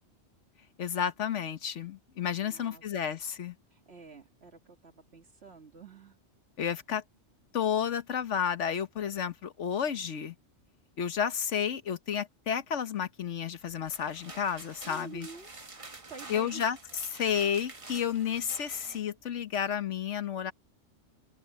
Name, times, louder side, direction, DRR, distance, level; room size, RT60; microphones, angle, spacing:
voice 1, 0.8-3.5 6.6-7.0 7.5-10.3 11.0-15.3 16.3-16.8 17.1-20.5, left 8 dB, 85° left, 1.4 m, -31 dB
voice 2, 2.4-2.8 3.7-6.2 14.8-15.5 16.1-16.6, right 4 dB, 65° right, 2.3 m, -48 dB
sound 1, 13.7-19.0, right 3 dB, 30° right, 1.3 m, -48 dB
open air
omnidirectional pair, 1.2 m